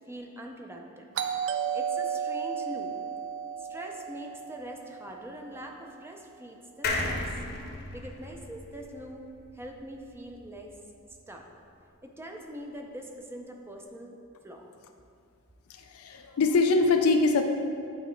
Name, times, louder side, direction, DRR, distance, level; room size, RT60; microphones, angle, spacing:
voice 1, 0.1-1.1 1.7-2.9 3.6-7.4 7.9-9.2 9.5-10.8 11.3-11.5 12.0-14.2 14.4-14.6, equal, 10° right, 2 dB, 0.5 m, -43 dB
Doorbell, 1.1-5.7, right 7 dB, 65° right, 0.4 m, -34 dB
sound 1, 6.8-10.3 10.7-10.8 11.0-11.1, left 2 dB, 50° left, 0.8 m, -35 dB
voice 2, 15.7-17.4, left 3 dB, 90° left, 5 dB, 0.4 m, -23 dB
8.1 x 4.0 x 4.4 m, 2.5 s
head